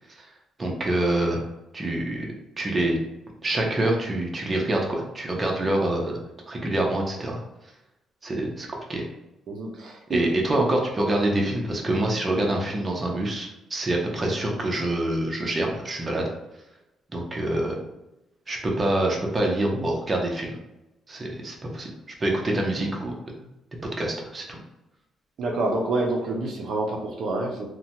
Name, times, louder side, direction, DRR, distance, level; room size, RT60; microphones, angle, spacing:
voice 1, 0.6-1.4 1.7-3.0 3.4-6.2 6.5-7.4 8.2-9.1 10.1-16.3 17.1-17.8 18.5-20.5 21.1-21.9 22.2-23.2 24.0-24.6, right 1 dB, 30° right, -1 dB, 0.7 m, -26 dB
voice 2, 9.5-10.3 25.4-27.6, right 2 dB, 65° right, 0 dB, 0.5 m, -27 dB
2.8 x 2.2 x 2.7 m, 0.95 s
cardioid pair, 90°, 0 cm